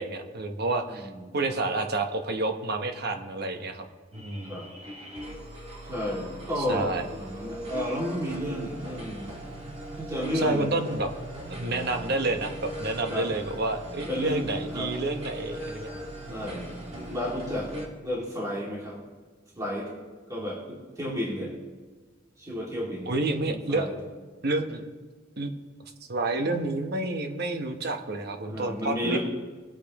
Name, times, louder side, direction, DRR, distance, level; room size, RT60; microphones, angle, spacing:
voice 1, 0.0-3.9 4.1-4.6 6.6-7.0 10.4-11.1 11.5-15.9 23.1-23.9 24.4-24.8 25.4-25.5 26.1-29.2, right 2 dB, 55° right, 6 dB, 1.0 m, -29 dB
voice 2, 0.9-1.2 4.5-4.7 5.9-9.3 10.0-10.7 13.1-13.3 14.1-14.9 16.3-17.7 18.0-19.0 19.6-19.9 20.3-21.5 22.4-23.1 23.5-23.9 28.5-29.2, equal, 20° right, -5 dB, 2.3 m, -32 dB
sound 1, 4.1-17.9, right 1 dB, 35° right, 2.1 m, -40 dB
21.0 x 8.5 x 3.0 m, 1.4 s
head